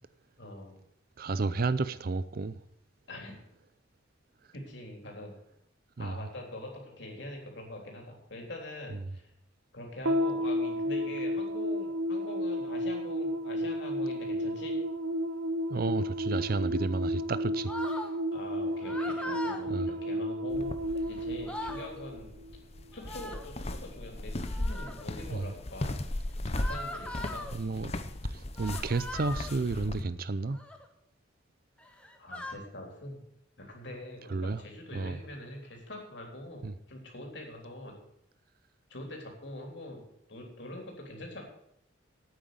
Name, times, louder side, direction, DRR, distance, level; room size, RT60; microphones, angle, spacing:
voice 1, 0.4-0.8 3.1-3.4 4.5-5.3 6.0-9.3 9.7-14.8 18.3-20.7 21.1-22.3 22.9-26.0 26.6-27.5 32.2-33.2 33.6-37.9 38.9-40.0 40.3-41.4, left 1 dB, 60° left, 3.5 m, -44 dB
voice 2, 1.2-2.6 6.0-6.2 15.7-17.7 19.7-19.9 25.3-25.5 27.5-28.0 28.3-30.6 34.3-34.6 34.9-35.2 36.6-36.7, right 3 dB, 50° right, 0.5 m, -31 dB
sound 1, 10.0-22.6, equal, 80° right, 1.0 m, -32 dB
sound 2, 17.7-18.1 18.8-19.6 20.9-21.0 21.3-21.9 23.0-23.5 24.4-25.1 26.5-27.5 28.6-29.6 30.4-30.8 31.8-32.5, left 1 dB, 5° left, 1.2 m, -40 dB
sound 3, 20.5-30.0, left 1 dB, 30° left, 0.8 m, -37 dB
9.2 x 8.9 x 7.8 m
head